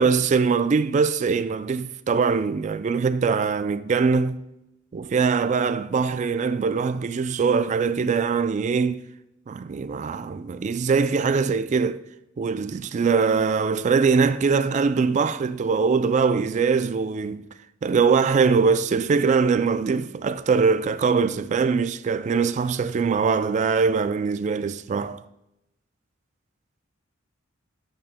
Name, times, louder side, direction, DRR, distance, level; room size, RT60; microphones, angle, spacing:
voice 1, 0.0-4.4 4.9-9.0 9.5-12.0 12.4-17.5 17.8-25.2, right 5 dB, 35° right, 0.3 m, -22 dB
8.9 x 8.8 x 2.2 m
head